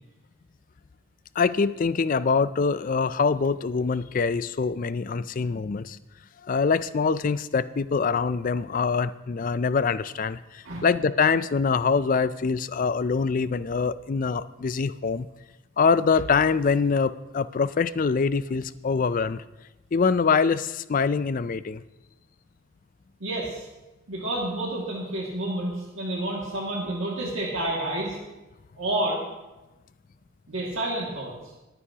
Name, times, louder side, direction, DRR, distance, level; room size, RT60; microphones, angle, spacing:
voice 1, 1.4-6.0 6.4-15.3 15.8-19.4 19.9-21.8, left 5 dB, 40° left, 15 dB, 0.4 m, -24 dB
voice 2, 23.2-23.7 24.1-28.2 28.8-29.2 30.5-31.3, right 1 dB, 70° right, -3 dB, 2.2 m, -29 dB
22.0 x 9.5 x 2.9 m, 1.0 s
head